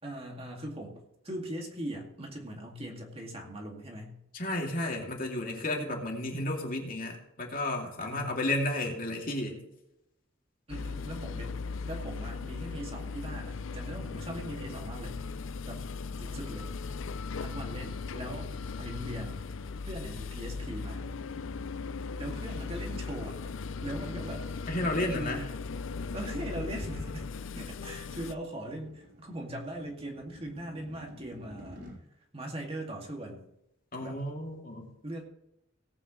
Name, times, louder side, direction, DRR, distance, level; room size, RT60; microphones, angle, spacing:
voice 1, 0.0-4.2 8.0-8.4 10.7-15.2 15.7-15.9 16.2-16.7 17.4-18.5 18.8-19.5 19.9-21.1 22.2-23.4 23.8-24.5 25.1-25.5 26.1-27.3 27.6-31.8 32.3-33.5 34.0-34.2 35.0-35.2, right 1 dB, 30° right, 0 dB, 2.1 m, -40 dB
voice 2, 4.3-9.6 24.7-25.4 33.9-34.9, left 1 dB, 45° left, 0 dB, 2.6 m, -32 dB
sound 1, 10.7-28.3, left 4 dB, 85° left, 0.5 m, -38 dB
sound 2, 27.8-32.0, equal, 55° right, 4.8 m, -53 dB
18.0 x 9.2 x 3.1 m, 0.82 s
head